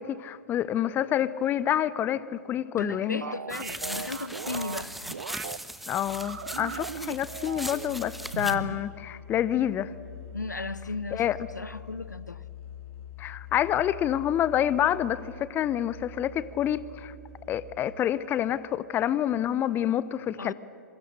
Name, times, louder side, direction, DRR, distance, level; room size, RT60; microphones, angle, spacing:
voice 1, 0.0-3.2 5.9-9.9 11.1-11.4 13.2-17.1 17.5-20.5, left 11 dB, 20° left, 0.6 m, -27 dB
voice 2, 2.7-4.9 10.3-12.4 20.4-20.5, left 3 dB, 85° left, 0.7 m, -36 dB
sound 1, 3.2-5.6 6.1-7.9 8.3-8.8, right 7 dB, 70° right, 0.6 m, -38 dB
sound 2, 3.5-8.6, right 1 dB, ahead, 1.0 m, -39 dB
Musical instrument, 6.0-18.1, left 6 dB, 50° left, 3.4 m, -45 dB
27.0 x 22.0 x 6.7 m
figure-of-eight pair, 110°, 9 cm